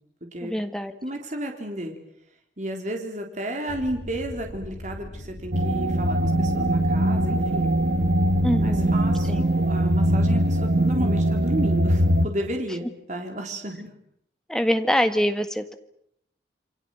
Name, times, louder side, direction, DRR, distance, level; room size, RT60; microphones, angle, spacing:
voice 1, 0.4-0.9 8.4-9.0 9.3-9.4 14.5-15.7, equal, 5° left, 8 dB, 1.7 m, -24 dB
voice 2, 1.0-1.9 2.6-7.8 8.6-13.9, right 1 dB, 40° right, 4 dB, 3.8 m, -32 dB
sound 1, 3.7-9.2, equal, 55° left, 2.1 m, -40 dB
sound 2, 5.5-12.3, right 1 dB, 60° right, 1.5 m, -21 dB
28.0 x 24.5 x 7.9 m, 0.73 s
head